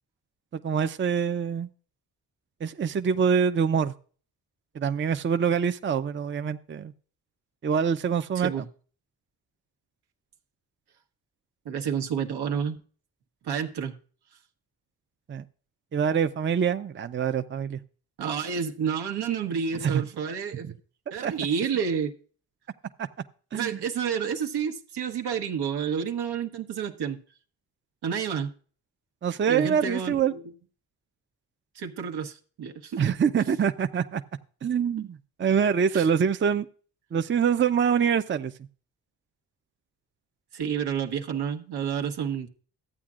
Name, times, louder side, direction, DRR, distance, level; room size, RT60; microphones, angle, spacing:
voice 1, 0.5-1.7 2.6-3.9 4.7-6.9 7.6-8.5 15.3-15.4 15.9-17.8 19.8-20.0 20.6-20.7 21.2-21.3 23.0-23.1 23.5-23.8 29.2-30.3 33.0-34.2 34.6-36.7 37.1-38.5, right 7 dB, 30° right, 0.6 m, -25 dB
voice 2, 8.3-8.7 11.6-12.8 13.4-13.9 18.2-20.7 21.1-22.1 23.5-27.2 28.0-28.5 29.5-30.4 31.7-33.1 35.9-36.1 40.5-42.5, right 7 dB, 75° right, 1.2 m, -30 dB
13.5 x 8.6 x 2.5 m
cardioid pair, 60°, 40 cm